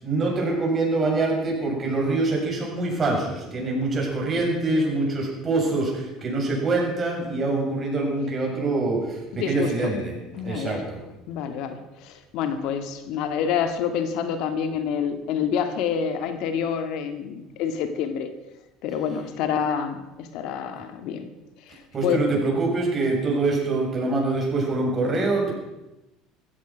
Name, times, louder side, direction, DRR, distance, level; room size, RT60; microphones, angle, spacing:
voice 1, 0.0-10.1 10.4-11.0 21.9-25.5, right 2 dB, 35° right, -1 dB, 7.6 m, -24 dB
voice 2, 9.4-9.9 10.3-10.8 11.3-18.3 18.8-21.3 21.7-22.2, left 7 dB, 65° left, 8 dB, 1.7 m, -27 dB
15.5 x 14.5 x 6.2 m, 0.99 s
supercardioid pair, 90°, 0 cm